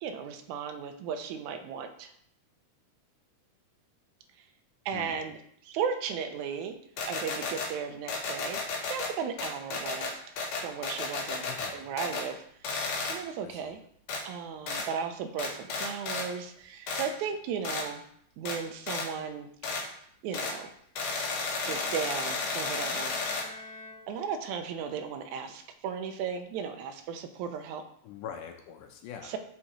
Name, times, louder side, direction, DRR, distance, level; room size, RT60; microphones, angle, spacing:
voice 1, 0.0-2.1 4.9-6.8 7.1-8.6 8.9-10.2 10.6-11.5 11.7-12.4 12.7-13.8 14.3-18.0 18.4-19.5 20.2-20.7 21.7-23.2 23.6-23.7 24.1-27.8 29.2-29.4, right 7 dB, 80° right, 7 dB, 1.9 m, -35 dB
sound 1, 7.0-7.7 8.1-9.1 9.4-11.7 12.0-12.3 12.6-13.2 14.1-14.2 14.7-14.9 15.4-16.3 16.9-17.1 17.6-17.9 18.5-18.6 18.9-19.1 19.6-19.8 20.3-20.6 21.0-23.5, left 4 dB, 65° left, 2.0 m, -33 dB
voice 2, 11.4-11.9 13.4-13.7 28.0-29.3, left 8 dB, 80° left, 4 dB, 2.3 m, -43 dB
Bowed string instrument, 21.6-24.8, left 2 dB, 45° left, 2.2 m, -48 dB
8.5 x 5.4 x 3.0 m, 0.67 s
omnidirectional pair, 3.7 m